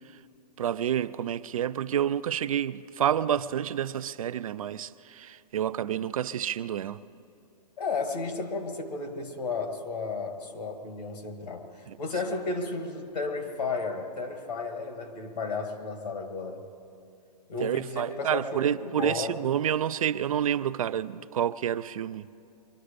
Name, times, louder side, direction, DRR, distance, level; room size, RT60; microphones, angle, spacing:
voice 1, 0.6-7.0 11.9-12.0 17.6-22.3, right 10 dB, 55° right, 0.4 m, -29 dB
voice 2, 7.8-16.6 17.5-19.4, left 3 dB, 75° left, 2.0 m, -33 dB
23.0 x 12.0 x 5.1 m
hypercardioid pair, 175°, 21 cm